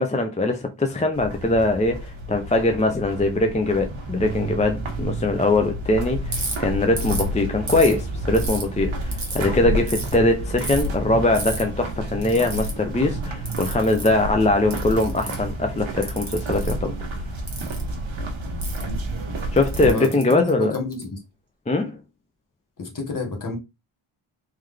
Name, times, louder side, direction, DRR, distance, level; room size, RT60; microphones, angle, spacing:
voice 1, 0.0-16.9 19.5-20.7 21.7-22.0, left 2 dB, 15° left, 0.4 m, -22 dB
sound 1, 1.1-19.9, right 1 dB, 70° right, 1.2 m, -30 dB
Ratchet pawl, 6.3-6.5 7.0-7.3 7.7-8.6 9.1-9.4 9.9-10.1 10.6-10.9 11.3-11.6 12.2-12.7 13.5-14.1 14.7-15.5 16.0-16.7 17.5-17.8 18.6-18.8 19.6-21.0, right 3 dB, 35° right, 1.4 m, -32 dB
voice 2, 19.8-21.2 22.8-23.6, left 3 dB, 40° left, 1.2 m, -29 dB
3.8 x 3.2 x 3.2 m
wide cardioid pair, 155°, 50 cm